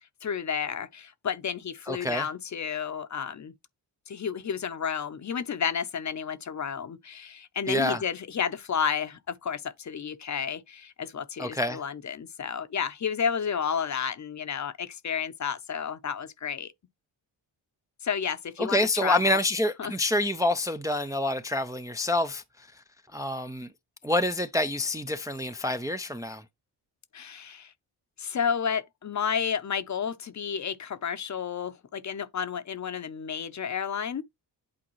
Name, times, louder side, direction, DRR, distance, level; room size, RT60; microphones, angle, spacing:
voice 1, 0.2-3.5 4.1-16.7 18.0-19.4 19.8-19.9 27.1-27.7 28.2-34.2, left 7 dB, 40° left, 0.7 m, -31 dB
voice 2, 1.9-2.3 7.7-8.0 11.4-11.8 18.6-22.8 23.1-23.7 24.0-26.4, left 1 dB, 10° right, 0.4 m, -27 dB
8.7 x 3.8 x 3.1 m
cardioid pair, 65°, 44 cm